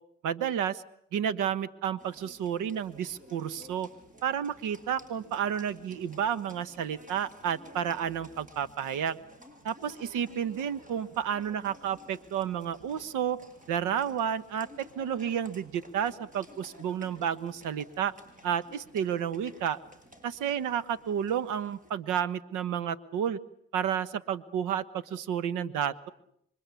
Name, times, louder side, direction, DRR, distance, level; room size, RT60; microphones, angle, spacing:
voice 1, 0.2-0.8 1.1-3.9 4.2-9.2 9.6-13.4 13.7-18.1 18.4-19.8 20.2-23.4 23.7-24.8 25.1-26.1, right 8 dB, 90° right, 17 dB, 1.3 m, -31 dB
Livestock farm animals working animals, 2.0-21.9, equal, 25° right, 6.2 m, -54 dB
28.0 x 24.5 x 8.4 m, 0.72 s
cardioid pair, 90°, 30 cm